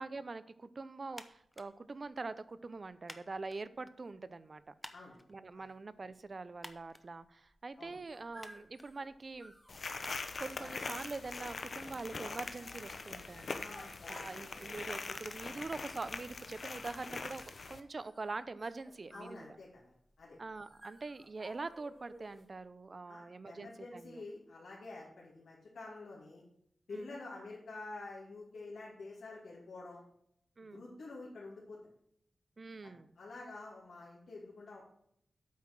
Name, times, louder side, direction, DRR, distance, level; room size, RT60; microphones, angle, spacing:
voice 1, 0.0-4.7 5.3-9.5 10.4-13.7 14.1-17.4 17.7-19.5 20.4-24.2 26.9-27.1 30.6-30.8 32.6-33.1, right 3 dB, 40° right, 14 dB, 0.5 m, -44 dB
sound 1, 1.1-11.3, left 1 dB, 10° left, 0.7 m, -57 dB
sound 2, 7.7-22.6, equal, 10° right, 1.5 m, -59 dB
sound 3, 9.7-17.8, left 4 dB, 50° left, 0.8 m, -43 dB
voice 2, 13.5-14.2 19.1-20.4 23.1-26.4 26.9-30.0 30.6-31.8 32.8-34.9, left 3 dB, 85° left, -5 dB, 2.5 m, -48 dB
8.4 x 5.8 x 6.1 m, 0.71 s
wide cardioid pair, 130°, 0 cm